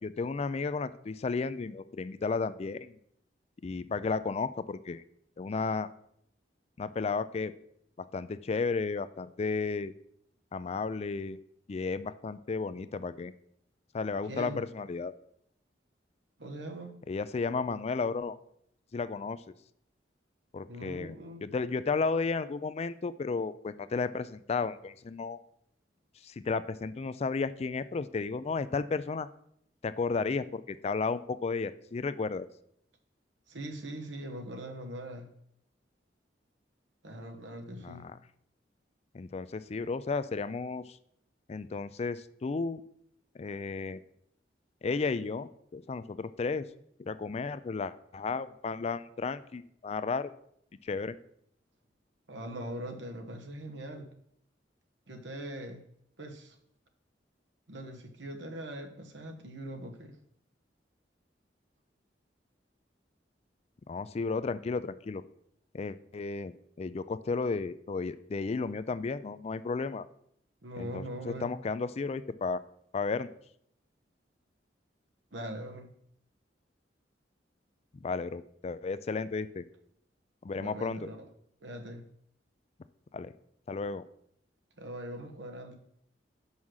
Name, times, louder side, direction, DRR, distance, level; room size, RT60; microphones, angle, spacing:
voice 1, 0.0-3.0 3.6-5.0 5.4-5.9 6.8-7.5 8.0-9.9 10.5-11.4 11.7-13.3 13.9-15.1 17.1-18.4 18.9-19.4 20.5-21.1 21.4-25.4 26.2-29.3 29.8-32.5 37.8-38.1 39.1-41.0 41.5-42.8 43.4-44.0 44.8-46.7 47.0-50.3 50.8-51.2 63.9-65.2 65.7-66.5 66.8-70.1 70.8-72.6 72.9-73.3 78.0-79.6 80.4-81.1 83.1-83.3 83.7-84.0, left 4 dB, 35° left, 14 dB, 0.4 m, -33 dB
voice 2, 14.2-14.6 16.4-16.9 20.7-21.4 33.5-35.3 37.0-38.1 52.3-54.1 55.1-55.8 56.2-56.6 57.7-60.2 70.6-71.5 75.3-75.9 80.5-81.2 81.6-82.0 84.8-85.8, right 1 dB, 90° right, 4 dB, 1.2 m, -41 dB
6.1 x 5.5 x 6.4 m, 0.70 s
head